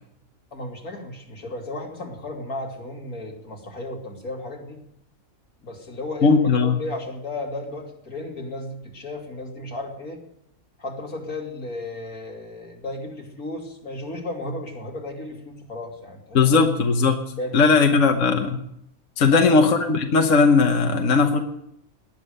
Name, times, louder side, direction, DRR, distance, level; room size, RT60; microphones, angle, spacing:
voice 1, 0.5-4.8 5.6-10.2 10.8-16.6 17.3-18.0 19.3-19.6, left 2 dB, 85° left, 0 dB, 3.3 m, -34 dB
voice 2, 6.2-6.8 16.3-17.2 17.5-18.6 19.2-21.4, left 4 dB, 65° left, 4 dB, 1.5 m, -18 dB
19.5 x 10.5 x 6.6 m, 0.76 s
omnidirectional pair, 1.5 m